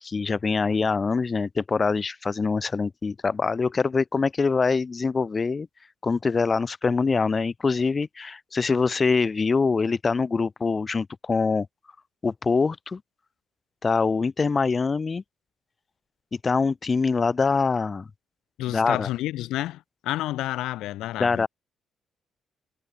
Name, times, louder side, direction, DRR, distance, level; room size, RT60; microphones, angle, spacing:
voice 1, 0.0-5.7 6.0-11.7 12.2-13.0 13.8-15.2 16.4-18.1 18.7-19.1 21.2-21.5, left 4 dB, 30° left, 1.0 m, -24 dB
voice 2, 18.6-21.5, left 15 dB, 90° left, 1.6 m, -30 dB
cardioid pair, 90°, 0 cm